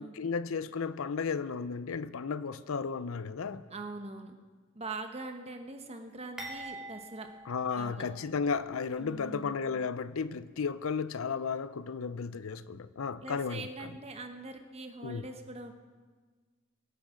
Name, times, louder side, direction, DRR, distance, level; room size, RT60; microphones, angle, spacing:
voice 1, 0.0-3.6 7.5-13.6 15.0-15.2, left 5 dB, 80° left, 0.5 m, -34 dB
voice 2, 3.7-4.4 4.7-7.3 7.7-8.1 9.0-9.6 13.2-15.7, right 2 dB, 30° right, 1.1 m, -42 dB
sound 1, 6.4-8.5 8.9-9.1 9.9-10.1, right 2 dB, 5° right, 2.6 m, -45 dB
23.5 x 8.4 x 5.0 m
head